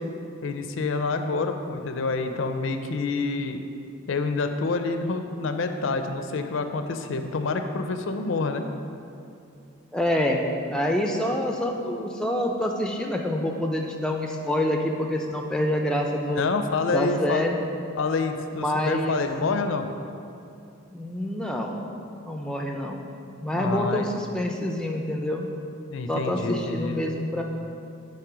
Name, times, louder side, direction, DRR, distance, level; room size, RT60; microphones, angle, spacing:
voice 1, 0.4-3.6 4.1-8.7 16.4-17.5 18.0-19.9 23.5-24.1 25.9-27.0, left 3 dB, 65° left, 7 dB, 0.4 m, -27 dB
voice 2, 9.9-10.4 10.7-16.5 16.9-17.6 18.6-19.2 20.9-21.8 22.2-23.0 23.4-25.4 26.1-27.4, left 1 dB, 5° left, 2 dB, 0.4 m, -26 dB
9.1 x 3.2 x 5.0 m, 2.5 s
head